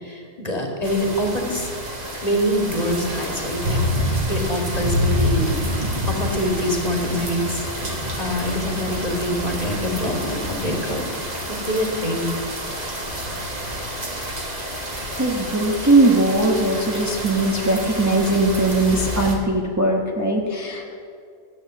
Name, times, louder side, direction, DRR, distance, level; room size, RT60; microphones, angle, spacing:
voice 1, 0.0-1.7 2.2-3.8 4.3-7.7 8.2-11.0 11.7-12.3 18.3-18.4, equal, 30° left, 1 dB, 2.0 m, -25 dB
sound 1, 0.8-19.4, equal, 30° right, 1.8 m, -28 dB
voice 2, 15.2-20.9, right 2 dB, 15° right, -1 dB, 1.1 m, -20 dB
14.0 x 8.9 x 7.8 m, 2.3 s
omnidirectional pair, 1.4 m